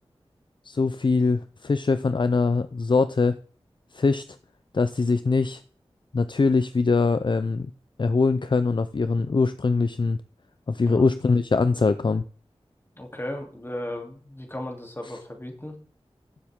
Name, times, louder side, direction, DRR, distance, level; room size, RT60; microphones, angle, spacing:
voice 1, 0.6-3.4 3.9-4.2 4.7-5.6 6.1-7.7 8.0-10.2 10.7-12.2, left 4 dB, 50° left, 12 dB, 0.5 m, -22 dB
voice 2, 12.9-15.7, left 1 dB, 20° left, 2 dB, 3.0 m, -35 dB
15.0 x 7.5 x 3.7 m, 0.43 s
wide cardioid pair, 75°, 10 cm